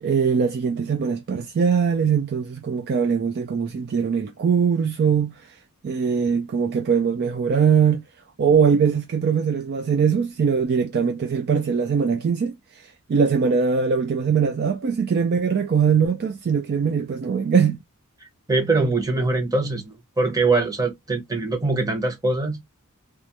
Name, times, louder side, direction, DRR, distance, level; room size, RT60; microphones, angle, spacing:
voice 1, 0.0-5.5 5.8-8.0 8.4-17.8, right 6 dB, 45° right, 0.3 m, -21 dB
voice 2, 18.5-22.6, right 3 dB, 15° right, 0.7 m, -23 dB
2.4 x 2.0 x 2.8 m
head